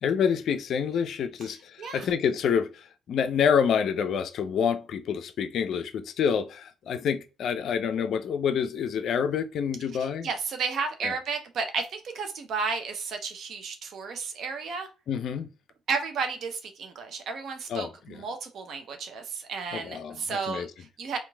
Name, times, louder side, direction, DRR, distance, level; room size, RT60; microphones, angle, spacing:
voice 1, 0.0-10.3 11.0-11.1 15.1-15.5 17.7-18.2 19.7-20.7, left 7 dB, 60° left, 0.4 m, -27 dB
voice 2, 10.0-14.9 15.9-21.2, right 5 dB, 60° right, 0.5 m, -33 dB
3.0 x 2.4 x 2.3 m
hypercardioid pair, 55°, 0 cm